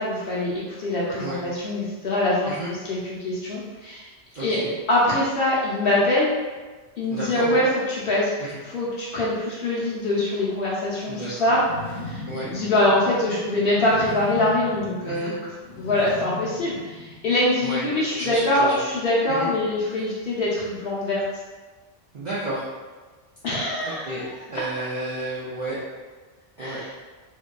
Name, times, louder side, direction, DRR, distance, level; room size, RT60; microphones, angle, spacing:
voice 1, 0.0-2.6 2.8-4.1 4.4-4.6 4.9-6.3 7.0-8.3 8.6-11.6 12.0-12.2 12.5-15.3 15.8-21.2 23.4-24.3 26.6-26.9, left 1 dB, 60° left, -6 dB, 0.7 m, -23 dB
voice 2, 4.3-4.7 7.1-7.6 8.4-8.5 11.1-11.5 12.3-12.5 15.1-15.3 17.6-18.8 19.3-19.5 22.1-22.6 23.8-24.2 24.5-25.8 26.6-26.8, right 1 dB, 55° right, -10 dB, 0.5 m, -32 dB
sound 1, 11.5-17.6, left 2 dB, 90° left, 0.9 m, -38 dB
2.6 x 2.2 x 2.2 m, 1.3 s
omnidirectional pair, 1.2 m